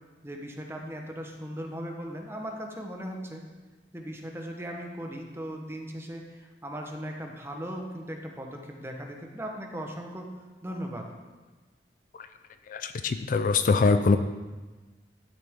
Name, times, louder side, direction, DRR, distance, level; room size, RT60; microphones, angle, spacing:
voice 1, 0.2-3.5 3.9-10.3 10.6-11.1, equal, 15° right, 2 dB, 0.9 m, -38 dB
voice 2, 12.7-14.2, left 4 dB, 50° left, 9 dB, 0.4 m, -23 dB
11.5 x 6.8 x 3.6 m, 1.3 s
head